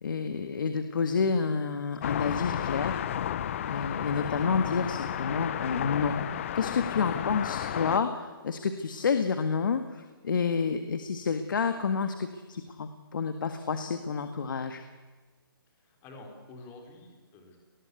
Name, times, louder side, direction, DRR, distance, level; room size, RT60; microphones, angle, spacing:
voice 1, 0.0-3.0 3.7-6.1 6.5-14.8, left 5 dB, 60° left, 8 dB, 1.8 m, -29 dB
sound 1, 2.0-8.0, left 10 dB, 35° left, 0.8 m, -32 dB
voice 2, 15.8-17.6, left 2 dB, 15° left, 2 dB, 4.3 m, -49 dB
26.5 x 20.0 x 8.4 m, 1.3 s
hypercardioid pair, 160°, 12 cm